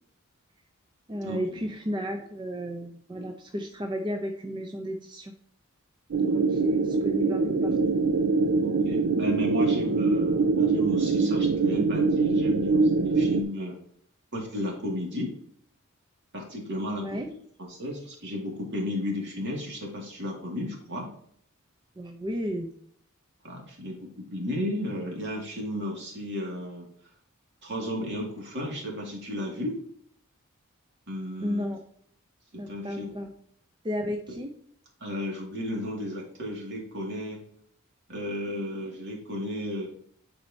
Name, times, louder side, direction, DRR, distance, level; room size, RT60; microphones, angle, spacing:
voice 1, 1.1-5.3 6.2-7.8 16.9-17.3 22.0-22.7 31.4-31.8 32.6-33.3 33.8-34.5, equal, 20° right, 3 dB, 0.5 m, -33 dB
sound 1, 6.1-13.4, right 4 dB, 80° right, 0.5 m, -24 dB
voice 2, 8.6-13.8 14.3-15.3 16.3-17.2 17.6-21.1 23.4-26.9 27.6-29.8 31.1-31.7 32.5-33.1 35.0-37.4 38.1-39.9, left 1 dB, 55° right, -1 dB, 2.1 m, -33 dB
9.9 x 4.4 x 2.7 m, 0.65 s
head